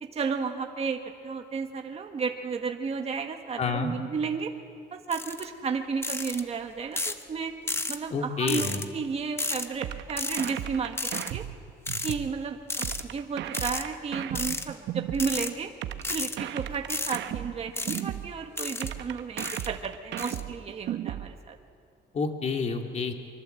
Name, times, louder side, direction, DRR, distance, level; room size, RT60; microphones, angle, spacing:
voice 1, 0.0-4.5 4.9-7.5 7.9-8.7 8.9-11.0 11.3-11.4 12.0-15.7 16.1-21.6, right 5 dB, 35° right, 4 dB, 1.6 m, -33 dB
voice 2, 3.6-3.9 8.1-8.8 22.1-23.1, left 5 dB, 40° left, 4 dB, 2.2 m, -29 dB
sound 1, 5.1-5.4 6.0-6.4 7.0-7.2 7.7-8.0 8.5-8.9 9.4-9.7 10.2-10.5 11.0-11.3 11.9-12.1 12.7-13.0 13.5-13.8 14.4-14.7 15.1-15.5 16.0-16.4 16.9-17.2 17.8-18.0 18.6-18.9 19.4-19.7 20.2-20.4, left 2 dB, 15° left, 1.0 m, -32 dB
sound 2, 9.8-12.3 12.8-15.3 15.8-18.3 18.8-21.3, right 12 dB, 80° right, 1.0 m, -35 dB
25.0 x 24.0 x 7.8 m, 2.2 s
cardioid pair, 140°, 18 cm